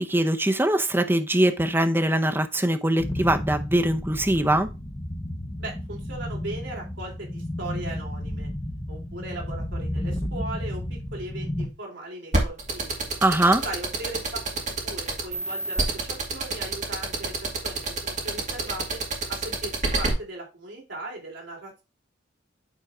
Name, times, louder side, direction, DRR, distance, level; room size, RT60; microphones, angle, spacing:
voice 1, 0.0-4.7 13.2-13.6, right 1 dB, 10° right, 0.7 m, -22 dB
sound 1, 3.0-11.7, left 1 dB, 15° left, 0.9 m, -32 dB
voice 2, 5.6-8.5 8.9-13.1 13.6-19.0 19.3-21.8, right 2 dB, 65° right, 3.3 m, -38 dB
sound 2, 12.3-20.1, right 3 dB, 40° right, 2.4 m, -26 dB
9.2 x 3.6 x 4.8 m
head